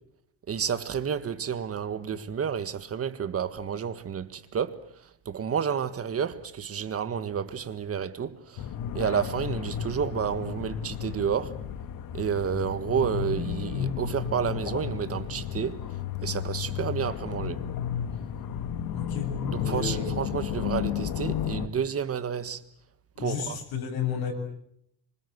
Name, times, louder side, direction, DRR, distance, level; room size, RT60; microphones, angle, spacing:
voice 1, 0.5-4.9 5.2-8.7 8.9-11.6 12.1-15.9 16.2-17.6 19.5-22.6 23.2-23.6, right 7 dB, 35° right, 1.7 m, -30 dB
sound 1, 8.6-21.7, left 9 dB, 65° left, 2.0 m, -33 dB
voice 2, 18.9-19.3 19.6-20.0 23.2-24.3, left 7 dB, 85° left, 7.8 m, -31 dB
27.0 x 25.5 x 8.1 m
cardioid pair, 145°, 38 cm